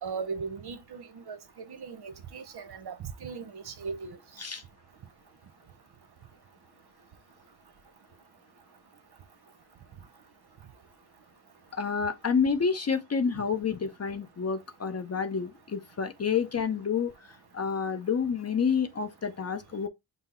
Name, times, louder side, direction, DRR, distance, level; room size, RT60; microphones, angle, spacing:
voice 1, 0.0-4.2, right 5 dB, 55° right, 0.8 m, -38 dB
voice 2, 11.7-19.9, left 6 dB, 35° left, 0.5 m, -29 dB
5.7 x 2.0 x 4.2 m
cardioid pair, 85°, 48 cm